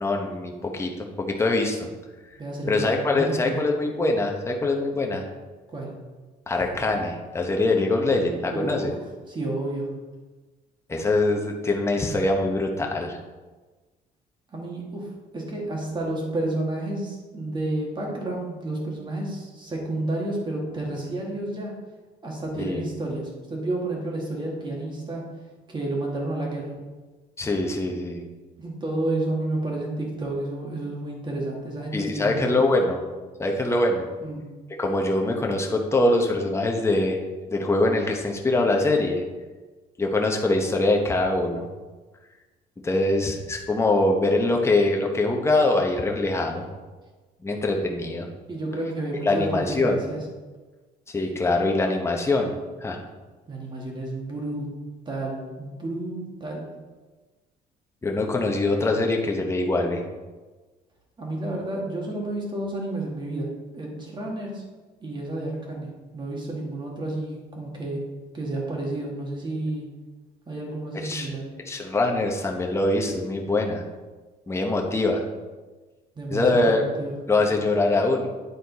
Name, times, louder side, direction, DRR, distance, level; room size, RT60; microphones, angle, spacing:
voice 1, 0.0-1.9 2.7-5.2 6.5-8.9 10.9-13.2 22.6-22.8 27.4-28.2 31.9-33.0 33.4-34.1 34.8-37.2 37.5-39.2 40.0-41.7 42.8-46.6 47.4-48.3 49.2-50.0 51.1-53.0 58.0-60.0 70.9-71.3 71.7-73.8 74.5-75.2 76.3-76.8 77.3-78.3, left 2 dB, 15° left, 1 dB, 1.0 m, -23 dB
voice 2, 2.4-3.6 5.7-5.9 8.5-9.0 9.3-9.9 14.5-15.1 15.3-21.7 22.2-25.2 25.7-26.7 28.6-32.7 34.2-34.5 48.5-50.2 53.5-54.7 55.1-56.7 61.2-64.6 65.0-68.0 68.3-69.9 70.5-71.4 76.2-77.2, right 2 dB, 25° right, -1 dB, 2.1 m, -31 dB
9.6 x 4.2 x 4.1 m, 1.3 s
cardioid pair, 110°, 17 cm